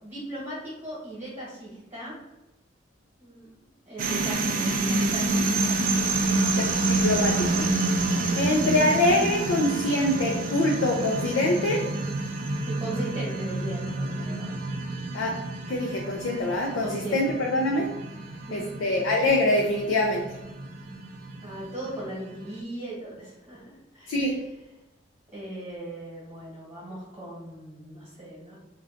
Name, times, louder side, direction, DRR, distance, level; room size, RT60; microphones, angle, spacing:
voice 1, 0.0-2.2 3.2-3.5 3.9-5.8 12.6-14.6 16.8-17.2 18.3-18.7 21.4-24.3 25.3-28.6, right 1 dB, 25° right, -9 dB, 1.1 m, -38 dB
sound 1, 4.0-22.5, right 2 dB, 45° right, 0.3 m, -28 dB
voice 2, 6.6-7.7 8.4-11.8 15.1-15.3 15.7-17.9 18.5-20.2 24.1-24.4, left 1 dB, 85° left, 0 dB, 0.4 m, -24 dB
2.5 x 2.2 x 3.6 m, 0.99 s
head